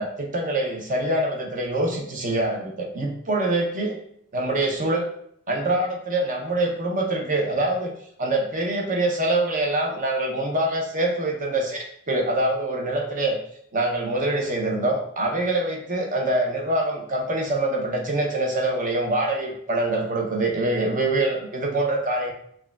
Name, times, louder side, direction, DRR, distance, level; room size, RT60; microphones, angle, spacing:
voice 1, 0.0-4.0 4.3-5.1 5.5-7.9 8.2-13.4 13.7-22.3, right 2 dB, 40° right, 1 dB, 0.7 m, -24 dB
6.0 x 2.3 x 2.4 m, 0.68 s
head